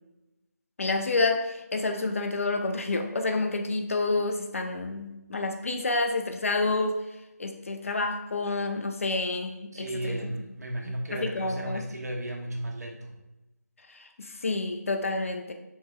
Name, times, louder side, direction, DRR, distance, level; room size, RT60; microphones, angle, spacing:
voice 1, 0.8-7.0 7.4-10.2 10.8-11.8 13.9-15.5, left 3 dB, 50° left, 5 dB, 0.5 m, -29 dB
voice 2, 9.7-13.1, right 1 dB, 65° right, 2 dB, 0.8 m, -34 dB
3.1 x 2.9 x 3.5 m, 0.98 s
figure-of-eight pair, 165°, 9 cm